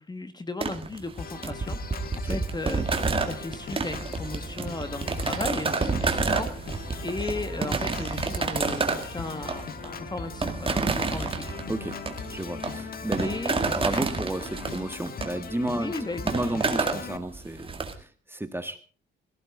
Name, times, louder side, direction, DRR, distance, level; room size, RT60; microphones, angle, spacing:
voice 1, 0.0-2.8 3.3-11.5 13.2-13.6 15.7-16.2, left 2 dB, 20° left, 9 dB, 1.5 m, -36 dB
sound 1, 0.6-17.9, right 4 dB, 25° right, 2.1 m, -30 dB
Organ, 1.2-17.2, left 6 dB, 50° left, 1.3 m, -40 dB
voice 2, 11.7-12.0 12.3-13.3 13.7-18.8, right 1 dB, 10° right, 9 dB, 1.6 m, -32 dB
17.5 x 15.5 x 3.8 m, 0.37 s
cardioid pair, 90°, 20 cm